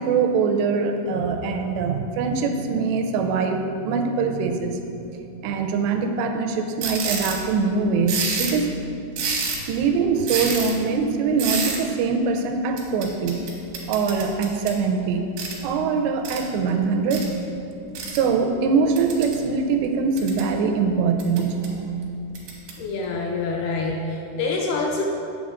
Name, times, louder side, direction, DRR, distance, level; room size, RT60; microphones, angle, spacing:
voice 1, 0.0-4.8 5.4-8.7 9.7-13.4 13.9-15.3 15.6-17.3 18.1-21.8, right 5 dB, 85° right, 5 dB, 2.7 m, -23 dB
sound 1, 6.8-7.4 8.1-8.6 9.1-9.7 10.3-10.7 11.4-11.8 12.8-14.8 15.4-15.6 16.2-16.4 17.1-17.2 17.9-18.2 19.0-19.4 19.9-20.5 21.2-21.7 22.3-22.7, right 5 dB, 70° right, 2.6 m, -28 dB
voice 2, 22.8-25.0, left 3 dB, 80° left, 0 dB, 2.4 m, -26 dB
8.5 x 7.4 x 3.6 m, 2.7 s
omnidirectional pair, 5.0 m